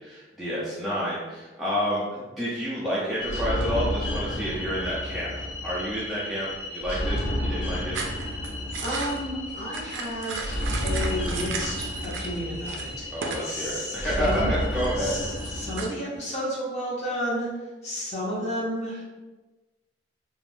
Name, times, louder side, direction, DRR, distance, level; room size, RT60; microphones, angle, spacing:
voice 1, 0.0-8.0 13.1-15.1, equal, ahead, -9 dB, 0.4 m, -29 dB
sound 1, 3.2-15.8, left 1 dB, 85° left, 0.7 m, -31 dB
sound 2, 7.9-12.4 12.6-13.5 13.8-15.9, right 4 dB, 80° right, 0.4 m, -36 dB
voice 2, 8.8-11.7 12.0-14.5 15.0-17.5 17.8-19.0, equal, 35° left, -6 dB, 0.8 m, -32 dB
2.4 x 2.1 x 3.2 m, 1.2 s
head